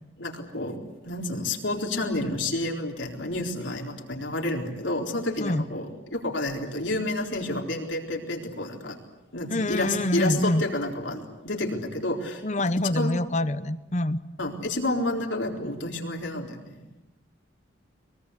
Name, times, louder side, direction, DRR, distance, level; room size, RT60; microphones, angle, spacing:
voice 1, 0.2-0.8 1.1-9.0 9.3-12.4 12.9-13.1 14.4-17.0, left 1 dB, 70° left, 1 dB, 4.0 m, -30 dB
voice 2, 9.5-10.6 12.4-14.2, left 1 dB, 35° left, 14 dB, 0.9 m, -25 dB
23.5 x 23.0 x 8.3 m, 1.0 s
head